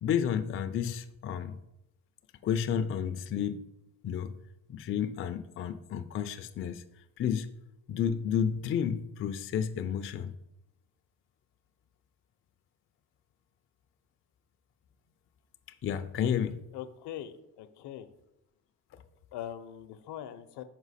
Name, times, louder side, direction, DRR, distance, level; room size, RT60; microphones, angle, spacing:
voice 1, 0.0-1.6 2.4-3.6 4.0-4.3 4.7-6.8 7.2-7.5 7.9-10.3 15.8-16.6, left 8 dB, 30° left, 9 dB, 0.4 m, -31 dB
voice 2, 16.7-18.1 19.3-20.6, left 10 dB, 70° left, 11 dB, 0.7 m, -42 dB
6.1 x 4.4 x 4.1 m, 0.86 s
supercardioid pair, 80°, 42 cm